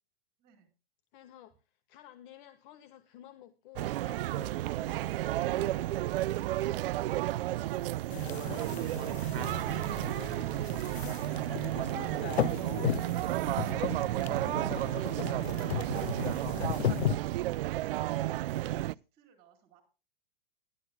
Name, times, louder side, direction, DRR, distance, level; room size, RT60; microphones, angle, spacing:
voice 1, 0.4-0.7 17.7-19.8, right 7 dB, 30° right, 4.0 m, -65 dB
voice 2, 1.1-6.0 12.4-13.1, left 12 dB, 55° left, 1.4 m, -52 dB
sound 1, 3.8-18.9, right 15 dB, 65° right, 0.5 m, -32 dB
sound 2, 8.1-17.2, left 12 dB, 90° left, 0.5 m, -36 dB
Bowed string instrument, 11.9-17.2, left 5 dB, 35° left, 2.9 m, -57 dB
17.5 x 12.0 x 2.2 m
hypercardioid pair, 115°, 31 cm